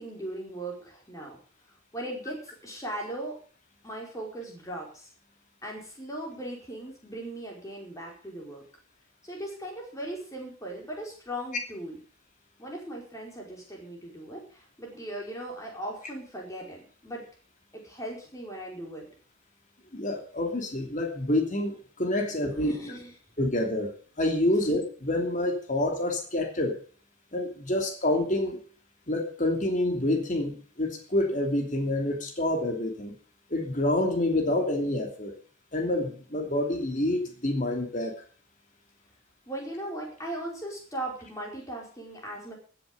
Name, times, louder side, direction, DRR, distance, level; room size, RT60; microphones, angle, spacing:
voice 1, 0.0-1.4 1.9-3.4 3.8-5.1 5.6-8.6 9.2-12.0 12.6-17.2 17.8-19.1 22.3-23.1 24.6-24.7 39.5-42.5, right 1 dB, 15° left, -1 dB, 4.7 m, -38 dB
voice 2, 19.9-22.7 23.4-23.9 24.2-26.8 27.3-28.6 29.1-33.1 33.5-35.3 35.7-38.1, left 1 dB, 35° left, 3 dB, 2.9 m, -27 dB
15.5 x 7.8 x 6.9 m, 0.42 s
head